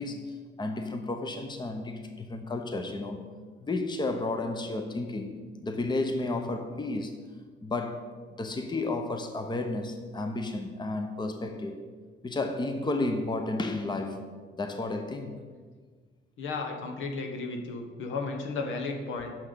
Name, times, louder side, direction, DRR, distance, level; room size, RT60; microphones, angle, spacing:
voice 1, 0.0-3.3 3.6-7.2 7.6-8.1 8.4-11.9 12.2-15.3, left 2 dB, 20° left, 0.8 m, -32 dB
voice 2, 16.4-19.3, left 3 dB, 80° left, 1.2 m, -34 dB
6.1 x 6.0 x 6.7 m
cardioid pair, 90°, 20 cm